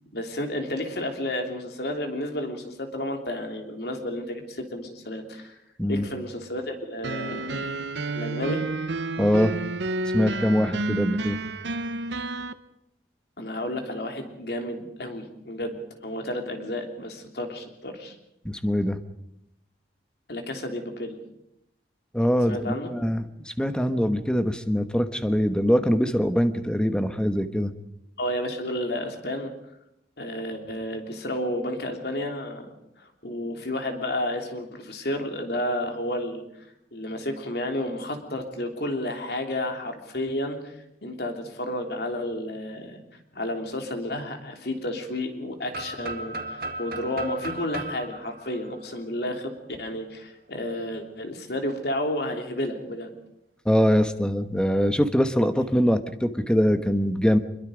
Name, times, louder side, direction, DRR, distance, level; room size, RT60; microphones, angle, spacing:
voice 1, 0.0-5.6 5.9-7.6 8.1-8.6 13.4-15.7 16.0-18.1 20.3-21.2 22.5-22.9 28.2-29.5 30.2-32.7 33.0-36.4 36.9-40.7 41.0-43.0 43.3-53.1, left 1 dB, 65° left, 4 dB, 3.3 m, -31 dB
sound 1, 7.0-12.5, right 2 dB, 85° right, 1.0 m, -30 dB
voice 2, 9.2-9.5 10.1-11.4 18.4-19.0 22.1-23.3 23.6-27.7 53.6-57.4, equal, 5° left, 9 dB, 1.2 m, -23 dB
sound 2, 45.7-49.6, right 2 dB, 60° right, 2.0 m, -36 dB
25.0 x 22.5 x 5.2 m, 0.80 s
head